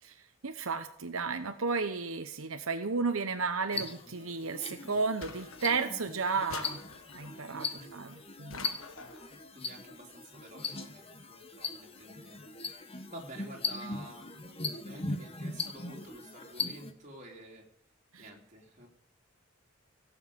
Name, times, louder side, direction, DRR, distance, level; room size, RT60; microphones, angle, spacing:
voice 1, 0.0-6.8 7.1-8.8 18.1-18.3, right 4 dB, 80° right, 7 dB, 1.0 m, -33 dB
sound 1, 3.7-16.9, left 4 dB, 25° left, 1.4 m, -40 dB
sound 2, 5.2-6.0 6.5-7.4 8.5-9.3, left 5 dB, 80° left, 1.4 m, -46 dB
voice 2, 9.5-12.8 13.1-17.7 18.2-18.9, right 1 dB, 35° right, 0 dB, 3.9 m, -50 dB
17.0 x 7.2 x 9.0 m, 0.67 s
head